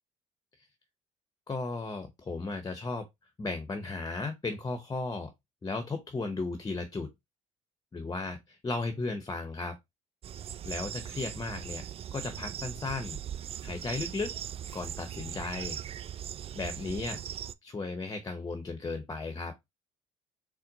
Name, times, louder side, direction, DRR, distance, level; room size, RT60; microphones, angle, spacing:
voice 1, 1.5-3.0 3.4-5.3 5.6-7.1 7.9-9.8 10.6-11.8 12.1-14.3 14.7-15.8 16.5-17.2 17.6-19.5, left 3 dB, 25° left, 0.9 m, -35 dB
sound 1, 10.2-17.5, right 10 dB, 40° right, 0.3 m, -40 dB
4.3 x 2.2 x 3.9 m
hypercardioid pair, 60°, 16 cm